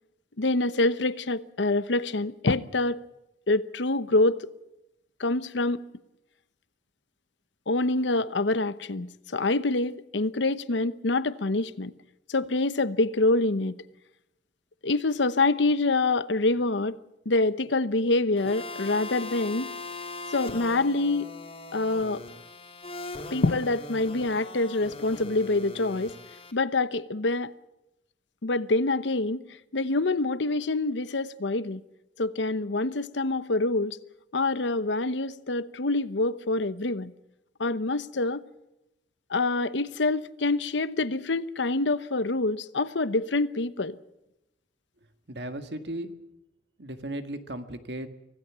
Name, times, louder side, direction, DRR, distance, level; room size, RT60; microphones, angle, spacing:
voice 1, 0.4-3.0 3.5-4.5 5.2-5.8 7.7-11.9 12.3-13.8 14.8-17.0 17.3-19.7 20.3-21.3 21.7-22.2 23.3-26.1 26.5-27.5 28.4-29.4 29.7-31.8 32.2-34.0 34.3-37.1 37.6-38.4 39.3-44.0, left 2 dB, 85° left, 0.9 m, -26 dB
sound 1, 18.4-26.5, left 3 dB, 30° left, 2.9 m, -40 dB
voice 2, 45.3-46.1 46.8-48.1, right 1 dB, 70° right, 1.9 m, -36 dB
25.0 x 17.0 x 7.4 m
head